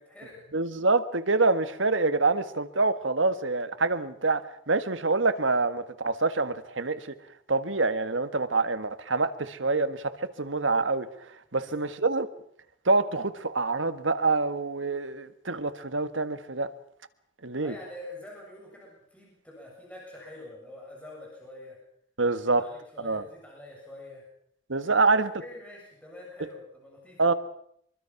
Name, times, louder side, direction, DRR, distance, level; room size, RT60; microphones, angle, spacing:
voice 1, 0.0-0.4 11.6-12.0 17.6-21.8 22.3-24.2 25.0-25.1 25.4-27.2, left 1 dB, 5° left, -3 dB, 7.4 m, -46 dB
voice 2, 0.5-4.4 4.7-7.1 7.5-11.1 11.5-12.3 12.8-16.7 17.4-17.7 22.2-22.6 23.0-23.2 24.7-25.3 27.2-27.3, right 3 dB, 90° right, 11 dB, 1.7 m, -26 dB
24.5 x 23.5 x 6.0 m, 0.68 s
head